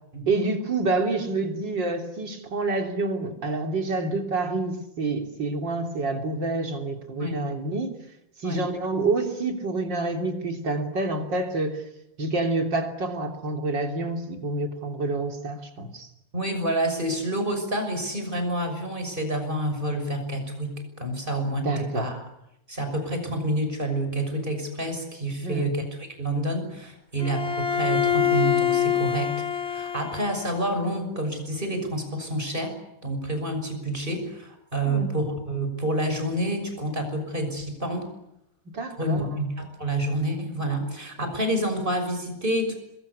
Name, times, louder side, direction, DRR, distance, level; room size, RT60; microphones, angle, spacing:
voice 1, 0.3-7.9 8.4-11.8 12.2-16.1 21.6-22.1 25.4-25.7 34.9-35.1 38.7-39.4, right 2 dB, 70° right, 4 dB, 3.9 m, -28 dB
voice 2, 16.3-22.2 22.7-25.8 26.2-32.7 33.0-38.1 39.0-42.7, right 1 dB, 25° right, 6 dB, 6.5 m, -28 dB
Bowed string instrument, 27.2-30.6, left 9 dB, 35° left, 1.9 m, -25 dB
26.5 x 22.5 x 9.9 m, 0.83 s
omnidirectional pair, 2.0 m